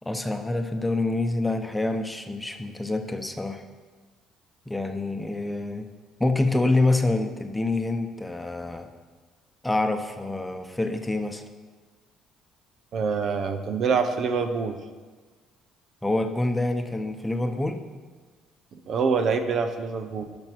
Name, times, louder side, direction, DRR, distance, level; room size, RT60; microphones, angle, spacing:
voice 1, 0.0-3.6 4.7-5.9 6.2-8.9 9.6-11.4 16.0-17.8, left 2 dB, 10° left, 6 dB, 0.9 m, -26 dB
voice 2, 12.9-14.8 18.9-20.3, right 5 dB, 55° right, 9 dB, 0.7 m, -25 dB
12.0 x 5.3 x 4.6 m, 1.4 s
hypercardioid pair, 60°, 0 cm